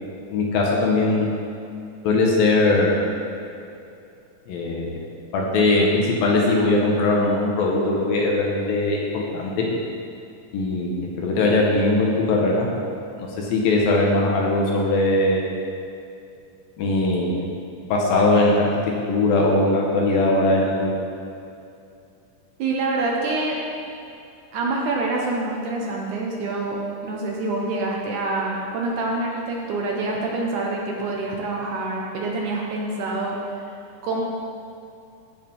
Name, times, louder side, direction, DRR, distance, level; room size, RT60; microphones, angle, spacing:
voice 1, 0.3-1.3 2.0-3.0 4.5-5.0 5.3-9.7 10.5-12.7 13.4-15.5 16.8-17.4 17.9-18.8 19.1-20.9, left 2 dB, 75° left, -2 dB, 2.9 m, -20 dB
voice 2, 22.6-23.6 24.5-26.8 27.0-33.6 34.0-34.2, right 2 dB, 70° right, -2 dB, 2.1 m, -26 dB
14.5 x 4.9 x 5.4 m, 2.6 s
omnidirectional pair, 4.2 m